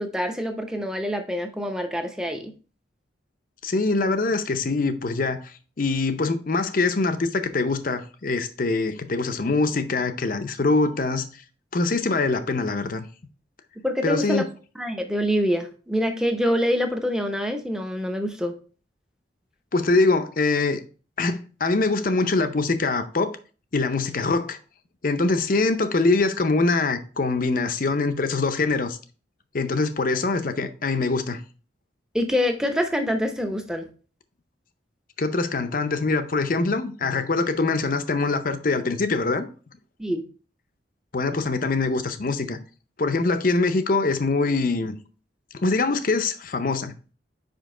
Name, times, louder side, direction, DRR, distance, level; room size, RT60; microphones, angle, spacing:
voice 1, 0.0-2.5 13.8-14.5 14.8-18.5 32.1-33.9 40.0-40.2, equal, 5° right, 0.7 m, -25 dB
voice 2, 3.6-11.2 11.7-13.0 14.0-14.4 19.7-20.8 21.2-23.4 23.7-24.6 25.0-29.0 29.5-31.4 35.2-39.5 41.1-42.6 43.0-45.0 45.5-46.9, left 3 dB, 45° left, 0.6 m, -23 dB
5.2 x 5.1 x 3.7 m
head